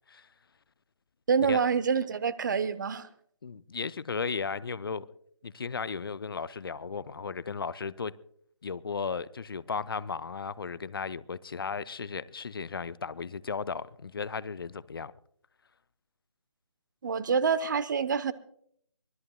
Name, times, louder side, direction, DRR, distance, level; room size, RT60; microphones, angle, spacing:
voice 1, 1.3-3.1 17.0-18.3, right 6 dB, 40° right, 0.8 m, -27 dB
voice 2, 3.4-5.1 5.4-8.2 8.6-15.1, left 5 dB, 50° left, 0.5 m, -35 dB
24.0 x 18.5 x 2.2 m
figure-of-eight pair, 150°, 16 cm